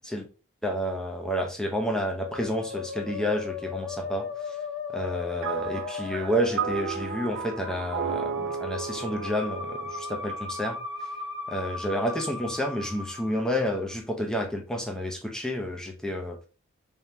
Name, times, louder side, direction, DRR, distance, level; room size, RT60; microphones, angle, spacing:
voice 1, 0.6-4.3 4.9-10.8 11.5-16.4, equal, 5° left, 0.6 m, -30 dB
Musical instrument, 2.2-13.9, left 5 dB, 55° left, 1.5 m, -37 dB
sound 1, 5.4-10.9, right 7 dB, 60° right, 0.6 m, -34 dB
3.6 x 3.4 x 2.7 m
head